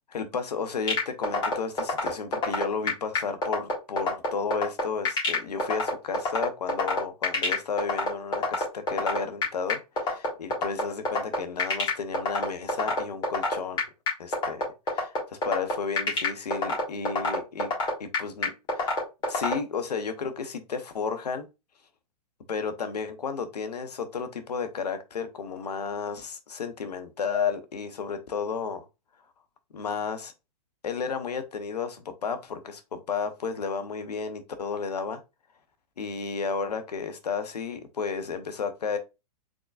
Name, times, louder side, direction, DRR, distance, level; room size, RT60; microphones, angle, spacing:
voice 1, 0.1-13.8 14.2-14.6 14.9-17.7 18.0-19.0 19.3-21.5 22.5-28.8 29.7-30.3 30.8-35.2 36.0-39.0, left 5 dB, 80° left, 0.8 m, -33 dB
sound 1, 0.9-19.5, left 2 dB, 20° left, 1.8 m, -25 dB
3.7 x 3.7 x 2.3 m
hypercardioid pair, 120°, 20 cm